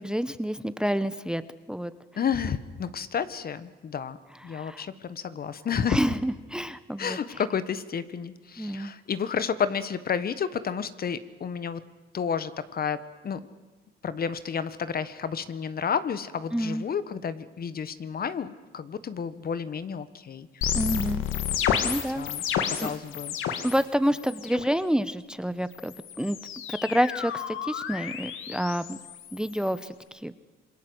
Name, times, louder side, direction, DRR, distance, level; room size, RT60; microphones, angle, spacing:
voice 1, 0.0-1.4 1.7-1.9 4.5-4.8 5.9-7.2 8.6-8.9 16.5-16.8 20.7-21.2 21.8-22.3 22.8-22.9 23.6-26.4 26.7-29.0 29.3-29.9 30.2-30.3, equal, 5° right, 14 dB, 0.9 m, -28 dB
voice 2, 2.2-4.2 4.4-6.0 7.0-11.8 12.1-13.4 14.0-20.8 21.9-23.3, left 7 dB, 50° left, 14 dB, 1.4 m, -31 dB
sound 1, 20.6-23.8 24.1-24.7 25.7-29.8, left 9 dB, 85° left, 2.1 m, -31 dB
27.5 x 21.0 x 8.0 m, 1.3 s
cardioid pair, 90°, 20 cm